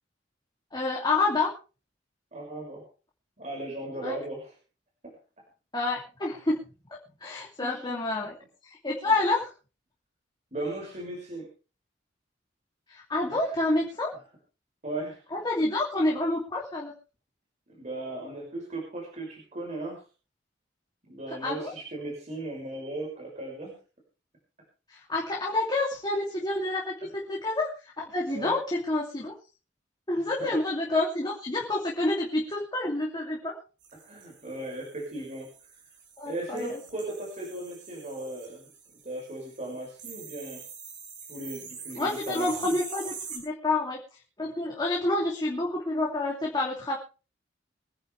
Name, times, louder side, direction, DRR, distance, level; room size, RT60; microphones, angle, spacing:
voice 1, 0.7-1.5 4.0-4.1 5.7-6.7 7.2-8.4 8.6-9.5 12.9-14.1 15.3-16.9 21.4-21.7 24.9-29.3 30.1-33.6 36.2-36.8 41.9-44.0 44.4-47.0, left 2 dB, 25° left, -3 dB, 2.8 m, -28 dB
voice 2, 2.3-2.8 3.4-4.5 5.0-5.2 7.6-8.3 9.0-9.2 10.5-11.5 13.3-13.5 14.8-15.2 17.7-20.0 21.1-23.8 28.3-28.5 30.1-30.6 34.0-35.5 36.2-38.6 39.0-40.6 41.3-42.8, right 2 dB, 40° right, -1 dB, 6.2 m, -37 dB
sound 1, 33.8-43.4, right 5 dB, 75° right, 5.9 m, -45 dB
24.5 x 10.5 x 3.4 m, 0.34 s
head